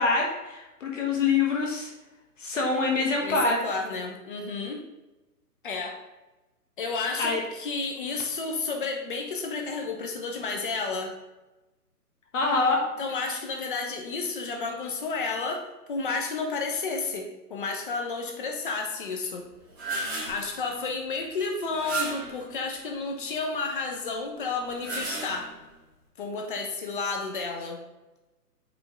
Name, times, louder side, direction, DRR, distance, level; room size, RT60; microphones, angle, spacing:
voice 1, 0.0-1.9 2.4-3.6 7.2-7.4 12.3-12.9, left 3 dB, 50° left, -1 dB, 1.4 m, -25 dB
voice 2, 3.2-4.8 5.6-6.0 6.8-11.1 13.0-19.5 20.2-25.5 26.2-27.8, left 4 dB, 30° left, 3 dB, 0.9 m, -31 dB
sound 1, 19.5-20.5 21.7-22.4 24.6-25.7, right 3 dB, 10° right, 1.0 m, -33 dB
8.1 x 3.7 x 3.6 m, 1.1 s
hypercardioid pair, 160°, 48 cm